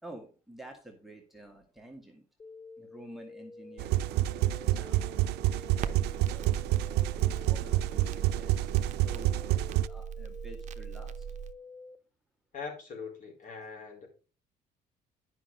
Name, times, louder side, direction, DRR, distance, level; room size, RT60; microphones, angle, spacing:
voice 1, 0.0-2.2 2.8-4.2 4.7-6.6 7.2-11.2, right 1 dB, ahead, 3 dB, 1.7 m, -50 dB
sound 1, 2.4-12.0, left 3 dB, 20° left, 0.5 m, -49 dB
sound 2, 3.8-9.9, right 15 dB, 75° right, 0.4 m, -28 dB
Crackle, 5.8-11.5, right 8 dB, 45° right, 0.8 m, -40 dB
voice 2, 12.5-14.1, left 5 dB, 50° left, 1 dB, 4.3 m, -42 dB
9.9 x 5.9 x 5.3 m, 0.36 s
cardioid pair, 110°, 17 cm